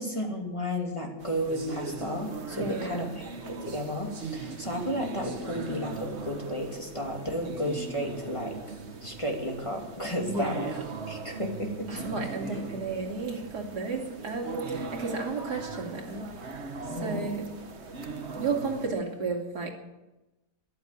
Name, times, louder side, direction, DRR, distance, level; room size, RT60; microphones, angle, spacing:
voice 1, 0.0-8.6 9.0-10.7 11.1-12.0 16.9-17.2, equal, 20° left, 0 dB, 2.7 m, -33 dB
sound 1, 1.2-18.9, right 3 dB, 45° right, 1.5 m, -39 dB
voice 2, 2.5-3.2 10.3-10.9 11.9-16.3 16.9-17.6 18.3-19.7, right 4 dB, 80° right, 1 dB, 3.1 m, -33 dB
14.0 x 12.0 x 8.3 m, 1.0 s
omnidirectional pair, 1.7 m